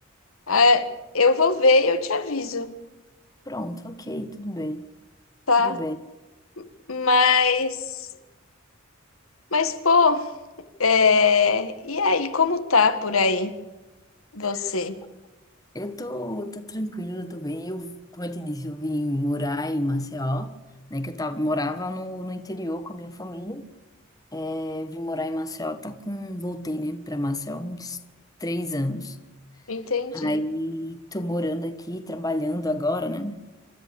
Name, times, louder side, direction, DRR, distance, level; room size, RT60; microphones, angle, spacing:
voice 1, 0.5-2.7 5.5-5.8 6.6-8.0 9.5-10.2 10.8-13.5 14.3-15.0 29.7-30.4, left 4 dB, 90° left, 1.7 m, -21 dB
voice 2, 3.5-4.9 5.6-6.0 14.4-14.7 15.7-20.5 20.9-23.7 24.3-28.0 28.4-29.2 30.1-33.4, left 1 dB, 20° left, 1.4 m, -30 dB
28.5 x 13.5 x 7.1 m
head